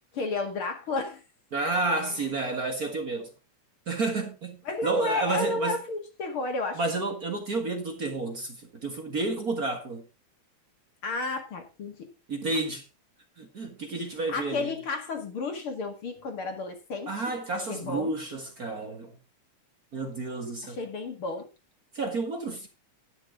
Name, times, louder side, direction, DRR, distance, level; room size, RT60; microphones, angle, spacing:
voice 1, 0.1-1.2 4.6-6.8 11.0-12.1 14.3-17.1 17.7-18.1 20.6-21.5, left 3 dB, 45° left, 2.6 m, -32 dB
voice 2, 1.5-3.3 3.9-5.8 6.7-10.0 12.3-12.8 13.4-14.8 17.1-19.2 19.9-20.8 21.9-22.7, right 3 dB, 40° right, 1.4 m, -31 dB
11.5 x 9.8 x 3.7 m
omnidirectional pair, 3.6 m